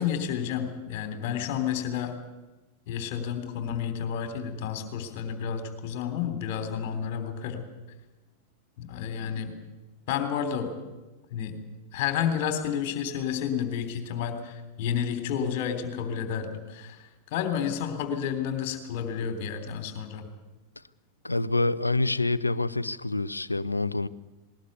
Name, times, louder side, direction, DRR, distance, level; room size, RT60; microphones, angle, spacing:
voice 1, 0.0-2.1 2.9-7.7 8.8-9.6 10.1-10.7 11.3-11.6 11.9-20.2, left 8 dB, 50° left, 3.3 m, -31 dB
voice 2, 21.2-24.1, left 2 dB, 85° left, 0.7 m, -26 dB
20.5 x 19.5 x 9.4 m
figure-of-eight pair, 90°, 0 cm